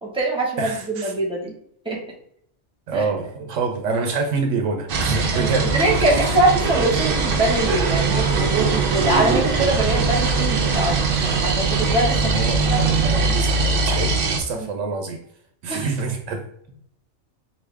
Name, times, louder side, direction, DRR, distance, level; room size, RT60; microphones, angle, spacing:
voice 1, 0.0-1.5 1.8-2.0 2.9-3.0 5.3-12.3 12.7-13.0 14.6-14.7 15.7-15.9, right 1 dB, 5° right, -3 dB, 1.1 m, -23 dB
voice 2, 0.6-1.1 2.9-5.7 6.0-6.4 12.1-15.2 15.6-16.4, right 4 dB, 80° right, 3 dB, 1.0 m, -26 dB
sound 1, 4.9-14.4, right 4 dB, 55° right, 0.7 m, -21 dB
4.7 x 2.7 x 3.3 m, 0.68 s
omnidirectional pair, 1.3 m